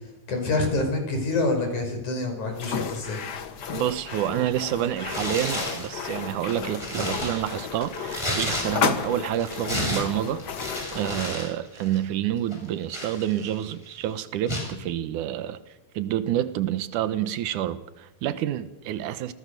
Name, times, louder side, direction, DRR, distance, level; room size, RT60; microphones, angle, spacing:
voice 1, 0.3-3.2, left 2 dB, 70° left, 6.9 m, -26 dB
sound 1, 2.5-11.4, left 6 dB, 55° left, 1.2 m, -33 dB
voice 2, 3.7-10.4 10.9-15.6 15.9-19.3, right 12 dB, 80° right, 2.6 m, -28 dB
Tearing, 5.1-5.9 6.4-9.0 9.3-11.5 11.8-12.0 12.5-13.7 14.5-14.7, equal, 10° left, 6.9 m, -32 dB
28.0 x 19.0 x 6.8 m
omnidirectional pair, 3.6 m